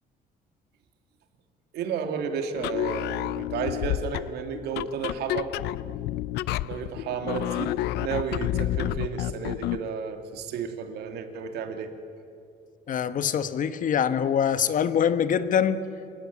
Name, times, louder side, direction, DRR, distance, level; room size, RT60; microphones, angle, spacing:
voice 1, 1.7-5.5 6.6-11.9, right 6 dB, 75° right, 2.9 m, -32 dB
sound 1, 2.6-9.9, left 15 dB, 80° left, 0.5 m, -30 dB
voice 2, 12.9-15.8, left 8 dB, 50° left, 1.4 m, -24 dB
26.5 x 23.5 x 8.6 m
cardioid pair, 110°, 17 cm